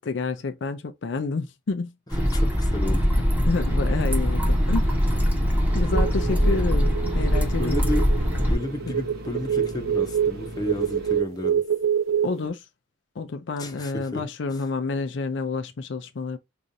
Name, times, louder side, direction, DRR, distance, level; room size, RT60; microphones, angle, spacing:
voice 1, 0.0-1.9 3.5-5.0 5.7-7.8 8.8-9.0 12.2-12.7 13.2-16.4, left 4 dB, 60° left, 0.4 m, -29 dB
sound 1, 2.1-8.5, equal, 10° right, 1.3 m, -22 dB
voice 2, 2.3-3.0 7.6-8.1 8.5-11.6 13.6-14.2, left 1 dB, 20° left, 0.8 m, -32 dB
sound 2, 3.5-11.2, equal, 50° right, 1.2 m, -39 dB
sound 3, 5.7-12.5, right 8 dB, 85° right, 0.5 m, -27 dB
5.1 x 2.5 x 2.7 m
head